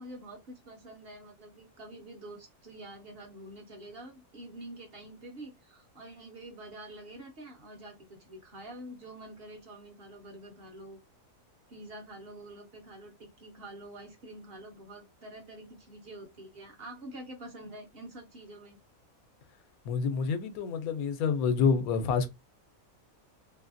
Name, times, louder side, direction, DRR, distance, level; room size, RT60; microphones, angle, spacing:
voice 1, 0.0-11.0 11.7-18.8, right 1 dB, 55° right, 0.8 m, -47 dB
voice 2, 19.9-22.3, left 5 dB, 85° left, 1.1 m, -27 dB
3.1 x 2.7 x 2.5 m
omnidirectional pair, 1.5 m